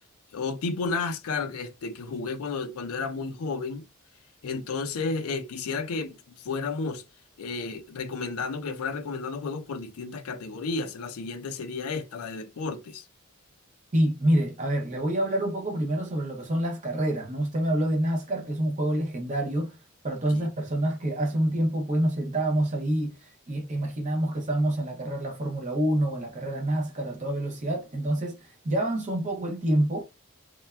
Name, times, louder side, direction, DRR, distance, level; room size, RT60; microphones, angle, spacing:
voice 1, 0.3-3.8 4.4-7.0 7.4-13.0 20.3-20.5, left 4 dB, 80° left, 0.4 m, -32 dB
voice 2, 13.9-19.8 20.0-30.0, right 1 dB, 35° right, 0.6 m, -27 dB
3.3 x 2.1 x 2.3 m
head